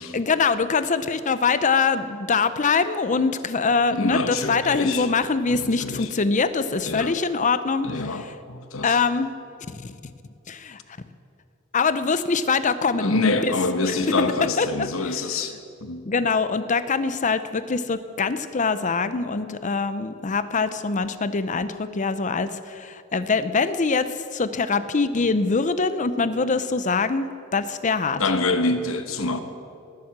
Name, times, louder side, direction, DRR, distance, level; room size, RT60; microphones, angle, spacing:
voice 1, 0.1-8.3 8.8-9.3 9.7-10.0 10.5-10.8 11.7-13.1 13.4-13.5 13.8-14.1 14.6-15.2 16.1-28.2, left 4 dB, 35° left, 12 dB, 0.6 m, -24 dB
voice 2, 3.9-5.1 5.5-6.1 6.8-7.1 7.8-9.0 13.0-15.5 15.8-16.0 28.2-29.4, left 3 dB, 70° left, 8 dB, 1.1 m, -26 dB
19.0 x 7.6 x 7.4 m, 2.5 s
head